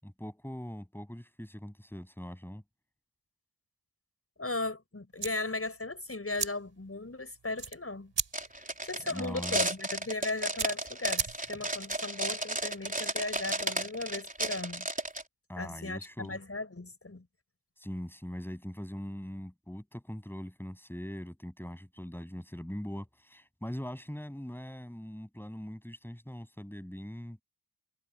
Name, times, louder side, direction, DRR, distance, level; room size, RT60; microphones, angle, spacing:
voice 1, 0.0-2.6 9.1-9.6 15.5-16.4 17.8-27.4, equal, 5° left, 7.8 m, -41 dB
voice 2, 4.4-8.1 8.9-14.9 15.5-17.3, left 2 dB, 30° left, 7.3 m, -37 dB
sound 1, 5.1-11.8, right 6 dB, 60° right, 4.7 m, -39 dB
sound 2, 8.3-15.2, right 1 dB, 15° right, 4.4 m, -33 dB
cardioid pair, 60°, 47 cm